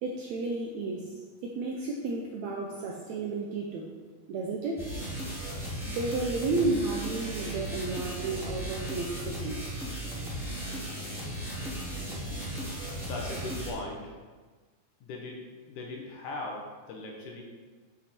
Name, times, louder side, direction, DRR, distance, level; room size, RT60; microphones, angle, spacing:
voice 1, 0.0-4.0 4.3-4.9 5.9-9.7, right 3 dB, 75° right, 0 dB, 1.7 m, -32 dB
sound 1, 4.8-13.7, right 1 dB, ahead, 1.6 m, -36 dB
voice 2, 13.1-14.2 15.0-17.4, left 2 dB, 70° left, 0 dB, 2.4 m, -39 dB
7.8 x 6.2 x 4.4 m, 1.4 s
omnidirectional pair, 4.0 m